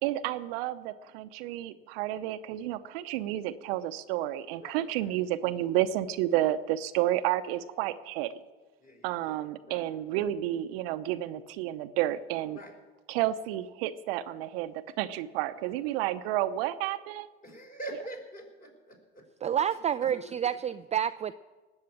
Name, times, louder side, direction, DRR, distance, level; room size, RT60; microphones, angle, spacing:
voice 1, 0.0-8.4 9.0-12.6 13.1-17.3, right 13 dB, 75° right, 11 dB, 0.8 m, -31 dB
voice 2, 4.6-5.1 8.8-9.9 12.5-12.7 17.4-19.2 20.1-20.2, right 2 dB, 30° left, 1 dB, 5.2 m, -44 dB
voice 3, 19.4-21.4, right 9 dB, 20° right, 12 dB, 0.4 m, -29 dB
18.5 x 6.5 x 8.5 m, 1.2 s
hypercardioid pair, 75°, 31 cm